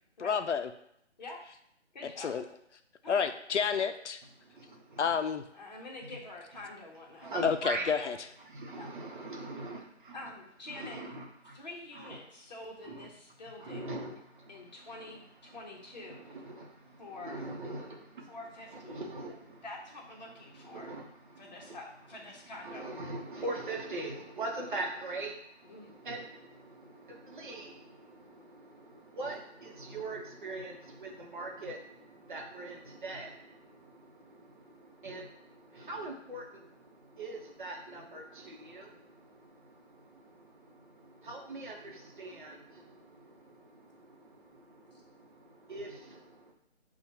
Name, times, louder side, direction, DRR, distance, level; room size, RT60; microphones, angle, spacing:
voice 1, 0.2-0.7 2.2-2.4 3.1-4.2 5.0-5.4 7.4-8.2, left 6 dB, 75° left, 8 dB, 0.5 m, -29 dB
voice 2, 1.2-1.5 1.9-2.3 3.0-3.3 5.5-7.5 8.0-8.1 8.8-8.9 10.1-11.0 11.5-13.9 14.5-16.4 17.0-17.4 18.3-19.0 19.6-20.9 21.4-22.8 25.6-26.0, left 2 dB, 40° left, -1 dB, 1.1 m, -46 dB
voice 3, 4.4-5.1 7.2-7.9 8.4-10.3 10.7-11.6 11.9-12.2 12.8-13.1 13.6-15.6 16.0-18.4 18.7-19.6 20.2-21.8 22.6-46.5, right 2 dB, 45° right, 0 dB, 0.9 m, -43 dB
6.9 x 2.4 x 2.8 m, 0.75 s
figure-of-eight pair, 155°, 35 cm